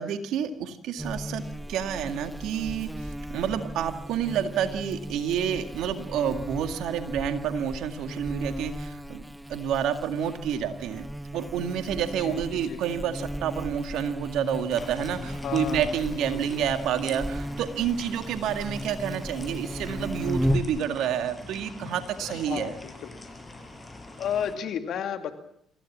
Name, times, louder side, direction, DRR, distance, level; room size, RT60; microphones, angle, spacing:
voice 1, 0.0-9.2 9.5-11.1 11.3-22.8, right 8 dB, 70° right, 8 dB, 2.0 m, -29 dB
Buzz, 1.0-20.8, equal, 5° right, 1.1 m, -35 dB
sound 1, 14.7-24.5, left 2 dB, 20° left, 5.6 m, -44 dB
voice 2, 15.4-16.0 16.3-16.6 22.2-23.1 24.2-25.3, left 8 dB, 65° left, 7 dB, 2.4 m, -32 dB
25.5 x 15.5 x 7.4 m, 0.71 s
hypercardioid pair, 50°, 0 cm